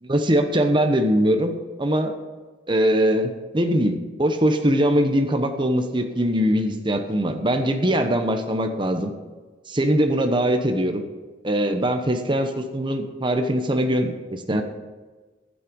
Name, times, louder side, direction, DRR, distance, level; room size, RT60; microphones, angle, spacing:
voice 1, 0.0-2.1 2.7-9.1 9.7-11.0 11.4-14.6, equal, 25° right, 6 dB, 1.0 m, -22 dB
12.0 x 8.8 x 5.3 m, 1.3 s
head